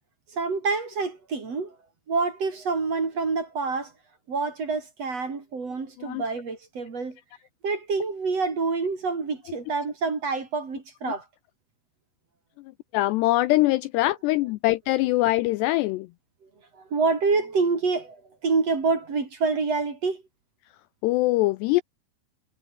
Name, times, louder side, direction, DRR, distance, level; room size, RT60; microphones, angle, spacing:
voice 1, 0.3-1.8 2.1-3.9 4.3-7.2 7.6-11.2 16.7-20.2, right 4 dB, 35° right, 4.3 m, -27 dB
voice 2, 12.9-16.1 21.0-21.8, left 18 dB, 80° left, 2.5 m, -23 dB
omnidirectional pair, 5.3 m